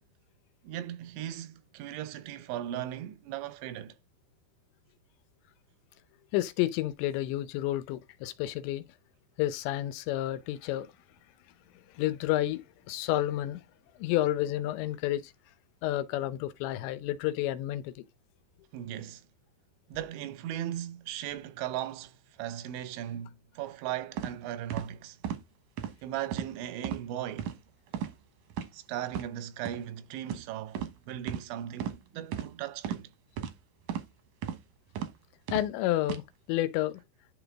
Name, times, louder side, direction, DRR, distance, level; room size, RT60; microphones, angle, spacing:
voice 1, 0.6-4.0 18.7-19.3 19.9-25.2 26.0-27.5 28.7-33.1, right 11 dB, 85° right, 3.2 m, -38 dB
voice 2, 6.3-8.8 9.4-10.9 12.0-12.6 12.9-13.6 14.0-15.3 15.8-18.0 35.5-36.2 36.5-36.9, left 14 dB, 85° left, 3.0 m, -30 dB
sound 1, 24.2-24.3 24.7-24.9 25.2-25.4 25.8-25.9 26.3-26.5 26.8-27.0 27.4-27.6 27.9-28.1 28.5-28.7 29.1-29.3 29.6-29.8 30.3-30.4 30.7-30.9 31.3-31.4 31.8-32.0 32.3-32.5 32.8-33.0 33.4-33.5 33.9-34.1 34.4-34.6 35.0-35.1 35.5-35.7 36.0-36.2, right 9 dB, 70° right, 1.9 m, -34 dB
11.0 x 3.9 x 3.5 m
omnidirectional pair, 5.1 m